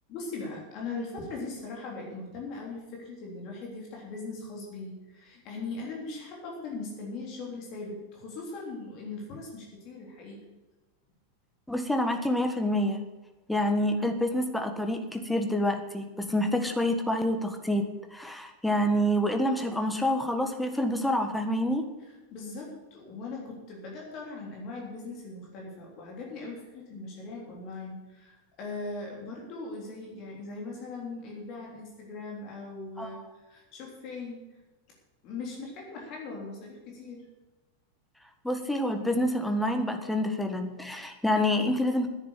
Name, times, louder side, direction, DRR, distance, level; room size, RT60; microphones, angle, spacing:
voice 1, 0.1-10.4 22.3-34.4 35.2-37.3, left 3 dB, 40° left, -1 dB, 3.4 m, -40 dB
voice 2, 11.7-13.0 13.5-21.9 33.0-33.2 38.4-42.1, left 1 dB, 5° left, 6 dB, 1.6 m, -27 dB
10.5 x 9.8 x 8.4 m, 1.1 s
figure-of-eight pair, 90°, 0 cm